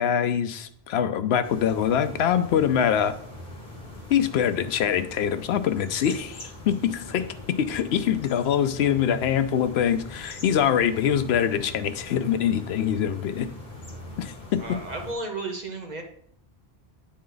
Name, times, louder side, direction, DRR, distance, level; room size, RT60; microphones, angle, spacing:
voice 1, 0.0-3.1 4.1-7.3 7.6-13.5 14.2-14.6, left 9 dB, 85° left, 0.8 m, -24 dB
sound 1, 1.4-15.1, left 2 dB, 45° left, 1.5 m, -42 dB
voice 2, 14.6-16.0, right 2 dB, 45° right, 0.9 m, -33 dB
9.5 x 4.2 x 3.9 m
omnidirectional pair, 1.0 m